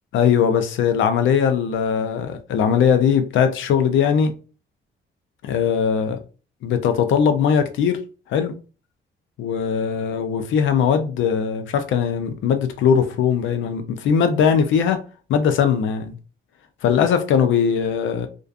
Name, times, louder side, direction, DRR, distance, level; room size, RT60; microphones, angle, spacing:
voice 1, 0.1-4.3 5.4-6.2 6.6-8.0 8.3-8.5 9.4-15.0 15.3-16.1 16.8-18.3, left 7 dB, 75° left, 0.5 m, -20 dB
2.4 x 2.2 x 2.4 m
cardioid pair, 90°, 20 cm